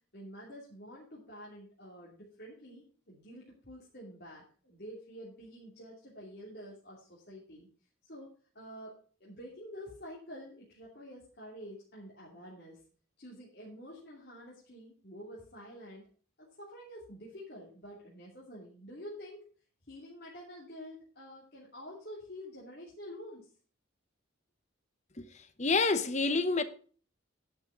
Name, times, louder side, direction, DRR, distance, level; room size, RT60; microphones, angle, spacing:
voice 1, 0.1-7.7 8.0-8.9 9.2-12.8 13.2-16.1 16.4-19.5 19.8-23.4, equal, 50° left, 2.9 m, -48 dB
voice 2, 25.6-26.6, left 3 dB, 35° left, 0.9 m, -27 dB
11.0 x 6.4 x 5.7 m
head